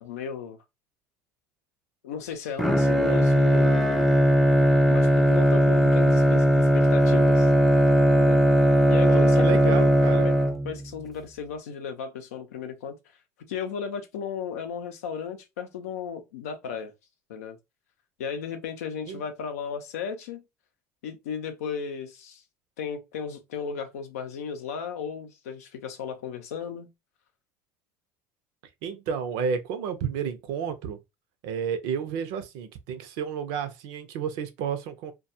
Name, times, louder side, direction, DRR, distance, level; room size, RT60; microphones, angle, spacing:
voice 1, 0.0-0.6 2.0-4.1 4.9-7.5 8.1-8.4 8.9-9.8 10.1-10.4 10.6-13.0 13.5-16.9 17.3-17.6 18.2-20.4 21.0-22.4 22.8-26.9, left 7 dB, 90° left, 0.5 m, -35 dB
Bowed string instrument, 2.6-10.9, equal, ahead, 0.4 m, -19 dB
voice 2, 9.1-10.3 19.1-19.2 28.8-31.0 31.4-35.1, right 7 dB, 70° right, 0.5 m, -31 dB
2.2 x 2.2 x 2.7 m
supercardioid pair, 90°, 8 cm